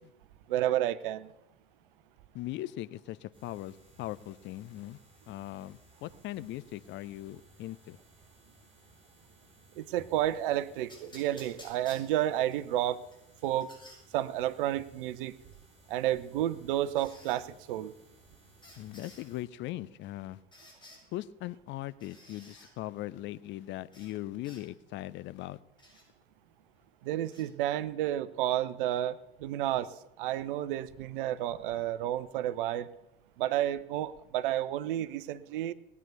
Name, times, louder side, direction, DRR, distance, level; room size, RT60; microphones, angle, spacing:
voice 1, 0.5-1.3 9.8-13.0 13.4-13.7 14.1-15.3 15.9-17.9 27.0-32.9 33.4-35.7, right 13 dB, 60° right, 15 dB, 0.8 m, -31 dB
voice 2, 2.3-5.0 5.3-8.0 18.8-20.4 21.1-25.6, left 15 dB, 40° left, 17 dB, 0.6 m, -40 dB
sound 1, 3.3-19.4, right 1 dB, 15° right, 7.8 m, -61 dB
sound 2, 10.9-12.6 13.1-14.0 15.5-15.6 17.0-17.4 18.6-19.3 20.5-21.0 22.0-22.7 23.9-24.1 24.4-24.6 25.8-26.0 27.2-27.4, left 1 dB, 15° left, 7.0 m, -53 dB
19.5 x 8.4 x 6.9 m, 0.90 s
figure-of-eight pair, 75°, 30 cm